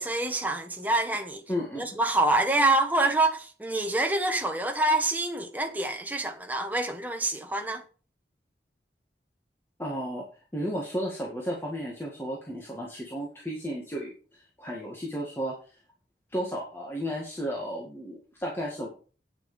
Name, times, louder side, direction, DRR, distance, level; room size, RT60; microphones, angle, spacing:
voice 1, 0.0-1.4 1.8-7.8, right 2 dB, 10° right, 1.3 m, -26 dB
voice 2, 1.5-1.9 9.8-10.2 10.5-15.8 16.3-18.9, equal, 15° left, 2.0 m, -33 dB
9.2 x 7.9 x 5.5 m
head